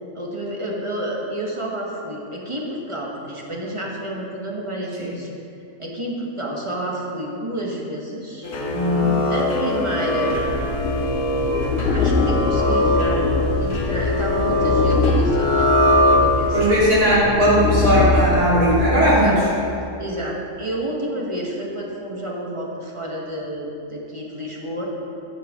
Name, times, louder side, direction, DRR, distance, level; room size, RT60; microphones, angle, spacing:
voice 1, 0.1-5.3 5.8-8.6 9.3-10.4 11.9-16.8 19.0-19.7 20.0-24.9, right 1 dB, 25° right, -2 dB, 0.9 m, -30 dB
sound 1, 8.4-16.7, left 1 dB, 50° left, 1.1 m, -21 dB
voice 2, 8.7-9.2 16.5-19.3, equal, 80° right, -8 dB, 3.0 m, -18 dB
sound 2, 10.3-19.1, left 3 dB, 70° left, 0.5 m, -23 dB
9.9 x 7.8 x 3.5 m, 2.8 s
omnidirectional pair, 1.6 m